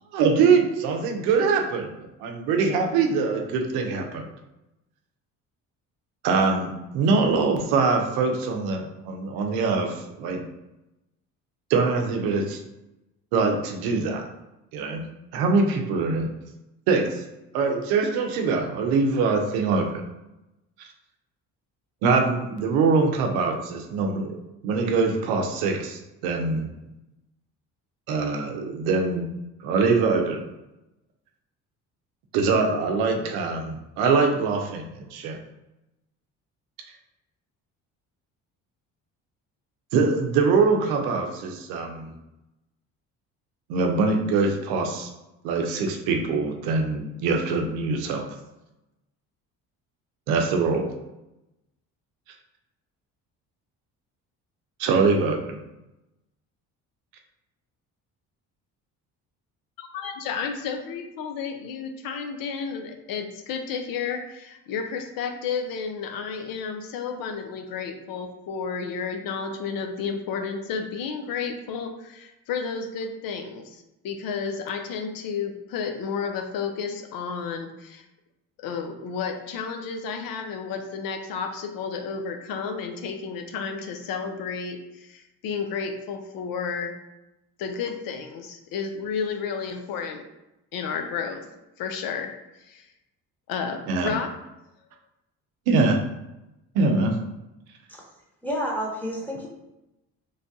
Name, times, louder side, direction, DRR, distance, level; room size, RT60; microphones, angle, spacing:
voice 1, 0.1-1.9 2.2-4.3 6.2-10.4 11.7-12.6 13.3-14.3 14.7-15.0 15.3-16.3 16.9-17.2 17.5-20.0 20.8-20.9 22.0-24.4 24.6-26.7 28.1-29.3 29.6-30.4 32.3-35.4 39.9-42.1 43.7-45.1 45.4-48.3 50.3-50.9 54.8-55.6 93.9-94.1 95.7-96.0 96.7-97.2, right 4 dB, 90° right, 3 dB, 0.6 m, -23 dB
voice 2, 59.8-78.1 78.6-86.9 87.6-90.2 90.7-91.4 91.8-92.3 92.6-92.9 93.5-94.3, left 6 dB, 70° left, 5 dB, 0.6 m, -32 dB
voice 3, 98.4-99.5, equal, 5° left, -3 dB, 1.0 m, -29 dB
3.2 x 2.2 x 2.6 m, 0.94 s
supercardioid pair, 75°, 36 cm